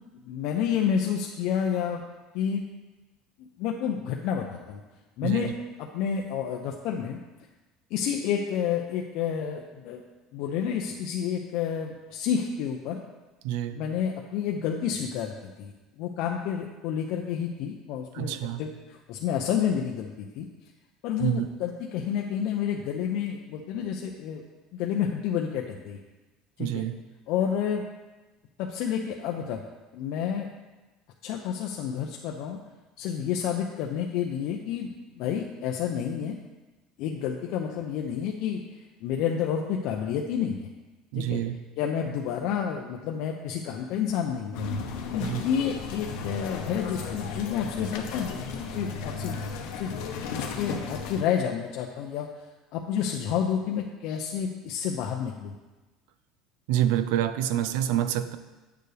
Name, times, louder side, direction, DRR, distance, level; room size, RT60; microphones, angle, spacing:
voice 1, 0.3-2.0 2.3-2.6 3.4-4.8 5.2-5.5 5.9-7.2 7.9-10.0 10.3-13.0 13.8-15.7 16.0-18.7 19.1-20.5 21.0-24.4 24.7-26.0 26.6-26.8 27.3-27.8 28.6-29.6 29.9-30.5 31.2-32.6 33.0-36.3 37.0-38.6 39.0-40.7 41.2-41.4 41.8-44.6 45.1-49.4 49.8-49.9 50.4-52.3 52.7-55.5, left 8 dB, 55° left, 1 dB, 0.6 m, -29 dB
voice 2, 5.2-5.5 13.4-13.9 18.1-18.7 21.2-21.5 26.6-27.0 41.1-41.7 45.2-45.5 56.7-58.4, right 11 dB, 80° right, 13 dB, 0.4 m, -27 dB
sound 1, 44.5-51.2, left 5 dB, 75° left, 1.0 m, -34 dB
9.0 x 6.8 x 3.3 m, 1.2 s
cardioid pair, 165°, 0 cm